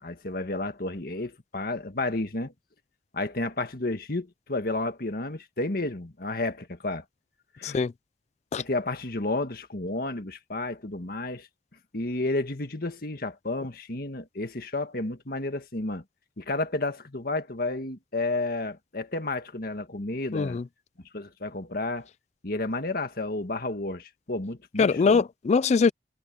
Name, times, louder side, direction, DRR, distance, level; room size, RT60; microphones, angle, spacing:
voice 1, 0.0-2.5 3.1-7.0 7.6-7.8 8.5-11.5 11.9-16.0 16.4-20.6 21.1-22.1 22.4-25.2, left 2 dB, 55° left, 1.8 m, -31 dB
voice 2, 20.3-20.6 24.8-25.9, left 5 dB, 40° left, 0.3 m, -22 dB
head